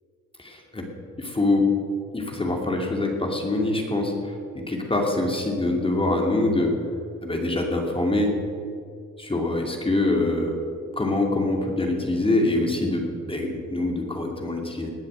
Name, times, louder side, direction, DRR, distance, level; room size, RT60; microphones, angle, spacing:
voice 1, 0.4-0.9 1.2-1.7 2.1-6.8 7.2-8.3 9.2-10.5 11.0-14.9, left 2 dB, 20° left, 1 dB, 2.4 m, -24 dB
19.0 x 7.2 x 7.8 m, 2.4 s
cardioid pair, 90°, 30 cm